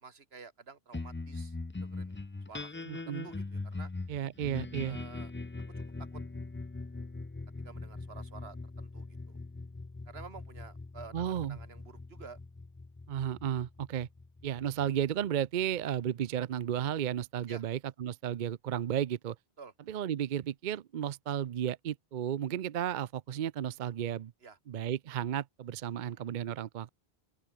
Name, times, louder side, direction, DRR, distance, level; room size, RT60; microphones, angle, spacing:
voice 1, 0.0-1.5 1.8-2.2 2.5-2.7 3.1-3.9 4.8-5.3 6.1-6.2 7.6-9.4 10.1-12.4 17.5-17.6 19.6-19.7 24.4-24.6 26.0-26.2, right 5 dB, 85° right, 1.9 m, -50 dB
sound 1, 0.9-15.6, left 3 dB, 20° left, 0.3 m, -42 dB
voice 2, 2.9-3.3 4.1-5.0 11.1-11.6 13.1-14.1 14.4-19.4 19.9-24.3 24.7-26.9, right 10 dB, 55° right, 0.7 m, -33 dB
open air
omnidirectional pair, 1.0 m